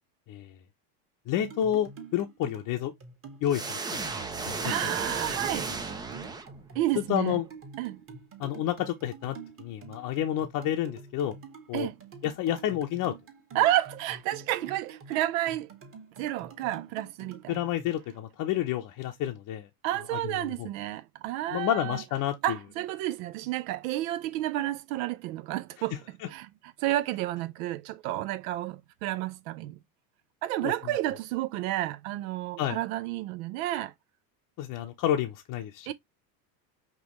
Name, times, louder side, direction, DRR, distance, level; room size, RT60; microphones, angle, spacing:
voice 1, 1.3-2.9 3.4-4.0 4.4-4.7 6.9-7.5 8.4-11.3 11.7-11.9 12.2-13.1 17.5-19.7 20.1-20.2 20.6-20.7 21.5-22.6 30.6-30.7 32.6-32.8 34.6-35.9, left 11 dB, 40° left, 0.8 m, -29 dB
sound 1, 1.4-17.9, right 4 dB, 25° right, 1.5 m, -47 dB
sound 2, 3.5-6.9, right 4 dB, 10° right, 0.4 m, -34 dB
voice 2, 4.6-5.7 6.7-7.4 7.8-8.0 11.7-12.0 13.5-15.7 16.2-17.6 19.8-22.0 22.4-29.8 30.4-33.9 35.9-36.0, right 14 dB, 55° right, 0.5 m, -31 dB
5.3 x 3.0 x 2.9 m
supercardioid pair, 120°, 50 cm